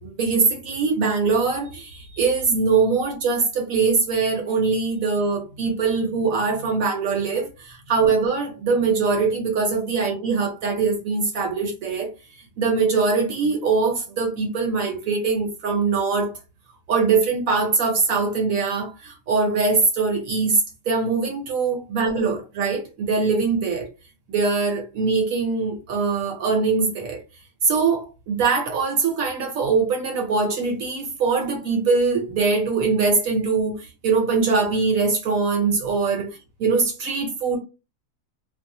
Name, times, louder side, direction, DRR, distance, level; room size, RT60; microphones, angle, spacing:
voice 1, 0.0-12.1 12.6-16.3 16.9-23.9 24.3-27.2 27.6-37.6, right 4 dB, 70° right, 1.0 m, -22 dB
2.6 x 2.0 x 2.6 m
omnidirectional pair, 1.6 m